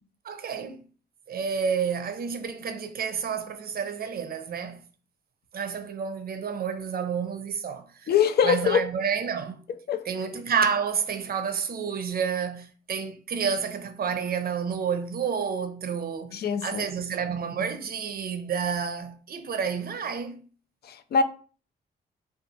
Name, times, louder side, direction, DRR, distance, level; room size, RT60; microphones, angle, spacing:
voice 1, 0.2-0.8 1.3-4.8 5.5-8.1 8.4-9.6 10.1-20.4, right 6 dB, 50° right, 0.5 m, -30 dB
voice 2, 8.1-8.9 9.9-10.1 16.3-16.8 20.8-21.2, left 7 dB, 55° left, 0.4 m, -23 dB
2.5 x 2.3 x 2.7 m
supercardioid pair, 55°, 19 cm